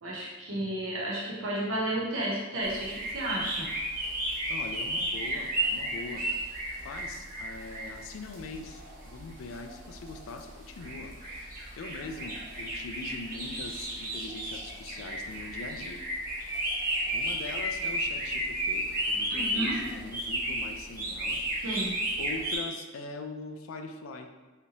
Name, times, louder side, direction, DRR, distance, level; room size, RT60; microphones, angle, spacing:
voice 1, 0.0-3.7 19.3-19.8 21.6-21.9, right 1 dB, 85° right, -4 dB, 0.8 m, -32 dB
sound 1, 2.6-22.6, right 1 dB, 45° right, 0.8 m, -33 dB
voice 2, 4.5-6.3 6.8-16.0 17.0-21.4 22.2-24.3, left 3 dB, 85° left, 5 dB, 0.4 m, -42 dB
3.3 x 2.7 x 2.9 m, 1.2 s
head